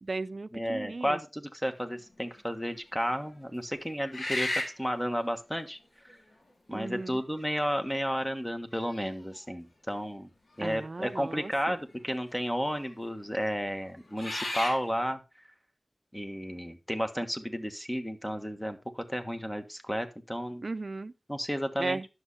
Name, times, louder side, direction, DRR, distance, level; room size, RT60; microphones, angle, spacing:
voice 1, 0.0-1.2 6.7-7.2 10.6-11.8 20.6-21.1 21.8-22.1, right 3 dB, 50° right, 0.5 m, -36 dB
voice 2, 0.5-5.8 6.7-10.3 10.6-15.2 16.1-20.6 21.3-22.0, equal, 10° left, 1.4 m, -32 dB
sound 1, 2.0-2.4 3.0-3.1 4.1-4.9 6.1-6.2 7.1-7.6 8.1-8.2 8.7-9.4 11.1-11.2 11.5-12.1 12.7-12.9 13.8-14.8, left 1 dB, 65° left, 3.5 m, -35 dB
11.0 x 6.5 x 4.2 m
wide cardioid pair, 80°, 0 cm